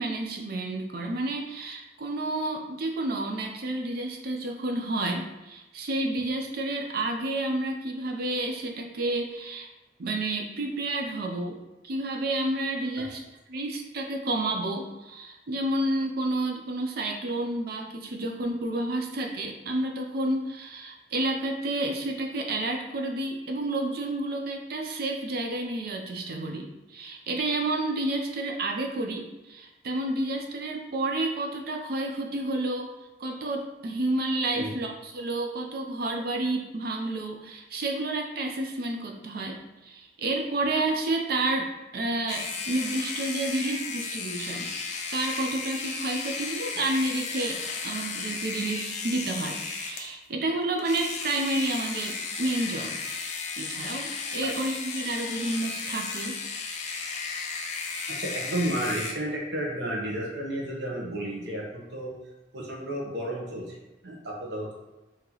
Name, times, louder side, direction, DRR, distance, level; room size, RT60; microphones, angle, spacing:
voice 1, 0.0-9.7 10.0-11.6 11.8-13.2 13.5-32.9 33.2-52.9 53.6-56.4, right 2 dB, 60° right, 2 dB, 0.5 m, -30 dB
sound 1, 42.3-50.1 50.8-59.1, left 4 dB, 40° left, 0.4 m, -34 dB
voice 2, 58.2-62.1 62.5-63.8 64.0-64.7, right 1 dB, 80° right, -2 dB, 1.0 m, -32 dB
3.0 x 2.9 x 3.8 m, 1.0 s
head